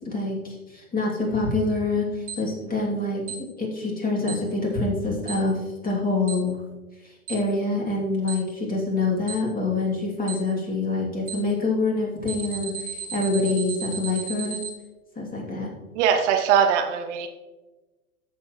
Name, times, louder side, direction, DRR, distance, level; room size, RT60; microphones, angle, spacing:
voice 1, 0.0-6.6 7.0-12.7 13.1-14.6 15.2-15.7, left 3 dB, 20° left, 2.8 m, -26 dB
Alarm, 2.3-2.4 3.3-3.4 4.3-4.4 5.3-5.4 6.3-6.4 7.3-7.4 8.3-8.4 9.3-9.4 10.3-10.4 11.3-11.4 12.3-14.7, right 8 dB, 75° right, 2.0 m, -33 dB
voice 2, 15.9-17.3, right 7 dB, 50° right, 0.8 m, -21 dB
14.0 x 7.1 x 3.1 m
hypercardioid pair, 95°, 45 cm